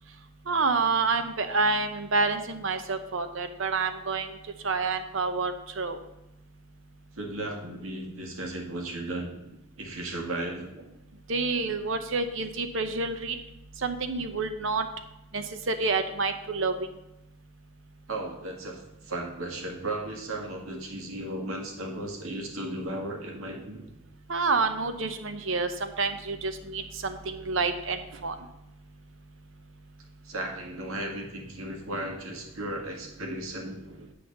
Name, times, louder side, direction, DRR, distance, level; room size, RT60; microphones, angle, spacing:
voice 1, 0.5-4.3 4.6-6.0 11.3-13.4 13.8-14.9 15.3-16.9 24.3-28.3, right 4 dB, 65° right, 9 dB, 0.8 m, -28 dB
voice 2, 7.2-9.3 9.8-10.7 18.1-23.9 30.2-34.0, right 1 dB, 85° right, 1 dB, 1.8 m, -35 dB
8.5 x 4.1 x 6.7 m, 0.90 s
head